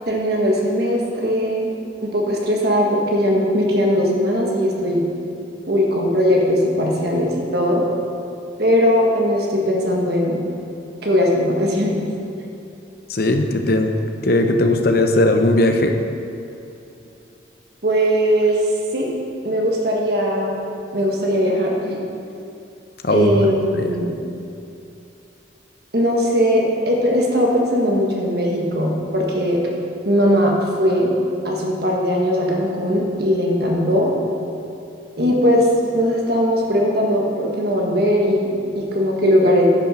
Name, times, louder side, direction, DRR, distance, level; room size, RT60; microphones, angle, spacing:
voice 1, 0.1-1.7 2.0-5.1 5.7-7.8 8.6-10.4 11.0-12.0 17.8-19.1 19.4-20.5 20.9-22.0 23.1-24.1 25.9-29.6 30.0-31.1 31.4-34.1 35.1-39.7, equal, 55° right, -2 dB, 1.6 m, -19 dB
voice 2, 13.1-14.0 14.2-15.9 23.0-23.3 23.7-23.9, left 1 dB, 50° left, 5 dB, 0.8 m, -17 dB
10.0 x 6.7 x 5.8 m, 2.7 s
head